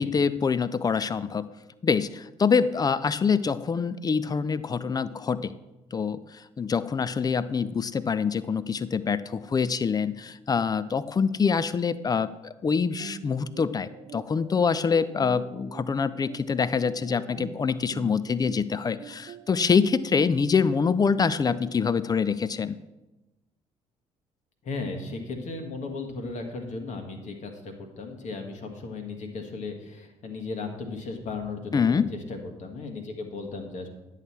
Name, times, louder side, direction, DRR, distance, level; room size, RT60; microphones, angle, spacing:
voice 1, 0.0-1.5 1.8-5.6 5.9-22.8 31.7-32.1, left 5 dB, 25° left, 16 dB, 0.5 m, -25 dB
sound 1, 13.0-21.7, right 8 dB, 40° right, 0.5 m, -45 dB
voice 2, 24.6-33.9, left 3 dB, 50° left, 4 dB, 1.5 m, -36 dB
10.5 x 6.5 x 4.2 m, 1.0 s
figure-of-eight pair, 50°, 16 cm